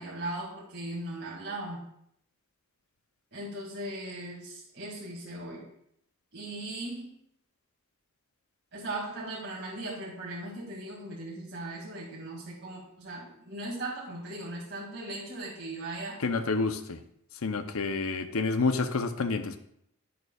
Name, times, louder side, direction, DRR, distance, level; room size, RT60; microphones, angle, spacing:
voice 1, 0.0-1.9 3.3-5.7 6.3-7.1 8.7-16.2, right 1 dB, 55° right, -5 dB, 2.2 m, -38 dB
voice 2, 16.2-17.0 17.4-19.6, left 4 dB, 75° left, 10 dB, 0.7 m, -28 dB
11.0 x 9.4 x 2.4 m, 0.72 s
head